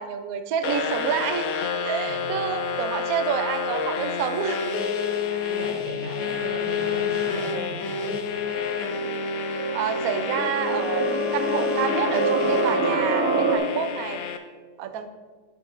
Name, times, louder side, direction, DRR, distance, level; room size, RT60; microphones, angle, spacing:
voice 1, 0.0-1.5 1.8-4.6 5.3-5.6 9.5-14.2 14.8-15.1, right 8 dB, 70° right, 7 dB, 0.9 m, -28 dB
sound 1, 0.6-14.4, left 6 dB, 65° left, 0.9 m, -28 dB
voice 2, 2.0-2.6 5.5-8.6, right 1 dB, 85° right, -1 dB, 2.1 m, -38 dB
sound 2, 8.5-13.6, right 3 dB, 40° right, 1.3 m, -26 dB
9.9 x 8.2 x 2.6 m, 1.4 s
omnidirectional pair, 2.1 m